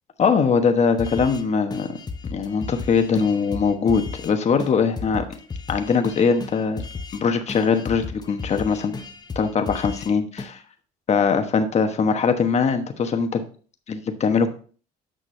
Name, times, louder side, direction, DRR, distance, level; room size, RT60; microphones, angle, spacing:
voice 1, 0.2-2.0 2.3-5.2 5.7-6.8 7.1-9.0 9.3-10.6 11.1-13.4 13.9-14.5, left 5 dB, 40° left, 6 dB, 1.2 m, -21 dB
sound 1, 1.0-1.4 1.7-4.3 4.6-4.7 5.0-7.2 7.5-10.1 10.4-10.5, left 4 dB, 25° left, 1.0 m, -34 dB
8.7 x 6.2 x 3.3 m, 0.41 s
cardioid pair, 110°, 17 cm